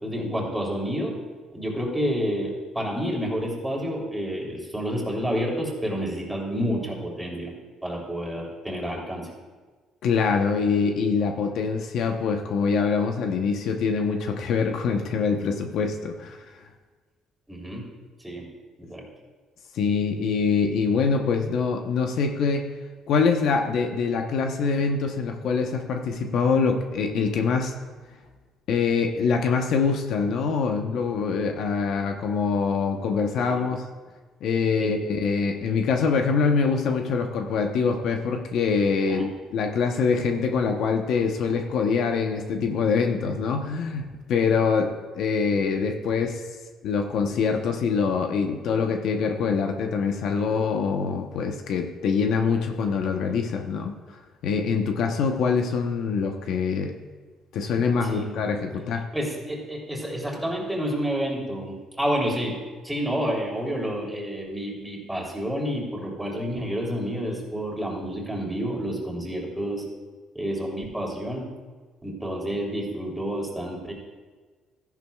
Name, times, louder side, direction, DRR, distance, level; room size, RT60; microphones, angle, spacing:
voice 1, 0.0-1.1 1.5-7.5 7.8-9.3 17.5-17.9 18.2-18.4 18.8-19.0 33.5-33.6 34.8-34.9 39.1-39.3 58.0-58.4 59.1-62.5 62.8-69.8 70.3-71.5 72.0-73.9, equal, 5° right, -2 dB, 3.1 m, -29 dB
voice 2, 10.0-16.4 19.7-22.7 23.1-27.7 28.7-33.8 34.4-46.4 46.8-54.0 54.4-57.0 57.5-59.1, left 5 dB, 70° left, 4 dB, 0.9 m, -24 dB
14.0 x 11.0 x 2.3 m, 1.4 s
cardioid pair, 90°, 0 cm